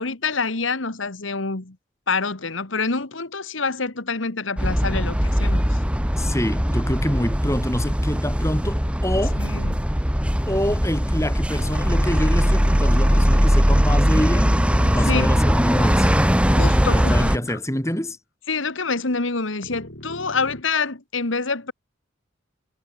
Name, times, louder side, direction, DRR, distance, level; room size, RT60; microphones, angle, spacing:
voice 1, 0.0-1.8 2.1-5.8 9.4-9.8 15.1-15.3 16.5-17.3 18.5-21.7, left 4 dB, 85° left, 1.9 m, -26 dB
sound 1, 4.6-17.4, equal, 5° right, 2.8 m, -20 dB
voice 2, 6.2-9.4 10.5-14.5 14.8-16.1 16.9-18.2, equal, 15° left, 3.4 m, -26 dB
sound 2, 11.6-17.6 17.8-18.0 19.6-20.6, left 2 dB, 60° left, 6.2 m, -40 dB
head